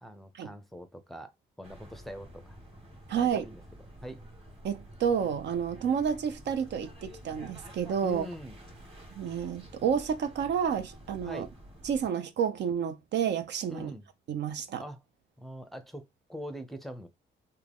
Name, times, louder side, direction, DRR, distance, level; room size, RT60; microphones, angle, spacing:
voice 1, 0.0-1.3 1.6-2.6 3.1-3.6 4.0-4.2 8.0-8.6 11.2-11.5 13.7-14.0 14.8-15.0 15.4-16.0 16.3-17.1, equal, ahead, 0.6 m, -43 dB
sound 1, 1.6-12.1, right 1 dB, 30° right, 2.1 m, -50 dB
voice 2, 3.1-3.4 4.6-8.3 9.1-11.5 11.8-13.9 14.3-14.8, right 7 dB, 60° right, 0.5 m, -30 dB
3.6 x 2.2 x 3.4 m
cardioid pair, 90°, 20 cm